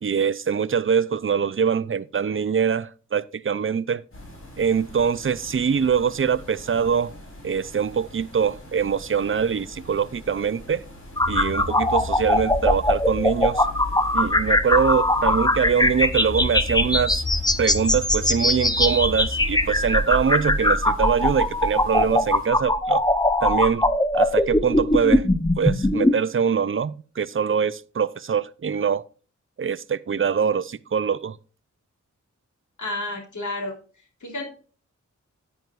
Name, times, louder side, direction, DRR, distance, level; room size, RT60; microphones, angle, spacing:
voice 1, 0.0-4.0 4.6-7.1 7.4-10.8 11.3-13.7 14.1-17.2 17.6-23.0 23.4-23.8 24.1-25.3 25.6-29.0 29.6-31.4, right 7 dB, 45° right, 0.5 m, -23 dB
sound 1, 4.1-22.5, left 1 dB, 45° left, 5.0 m, -44 dB
sound 2, 11.2-26.1, left 1 dB, 15° left, 0.9 m, -21 dB
voice 2, 32.8-33.7 34.2-34.5, left 2 dB, 75° left, 3.3 m, -30 dB
10.0 x 9.3 x 2.5 m
wide cardioid pair, 90°, 30 cm